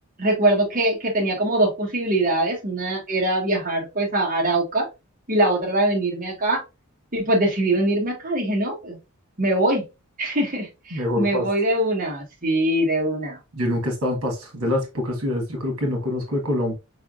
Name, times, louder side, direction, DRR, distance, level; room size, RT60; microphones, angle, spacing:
voice 1, 0.2-4.9 5.3-6.6 7.1-9.0 9.4-9.8 10.2-13.4, right 1 dB, 40° right, 1.2 m, -22 dB
voice 2, 10.9-11.5 13.5-16.7, left 1 dB, 85° right, 1.4 m, -25 dB
4.9 x 3.4 x 2.4 m
head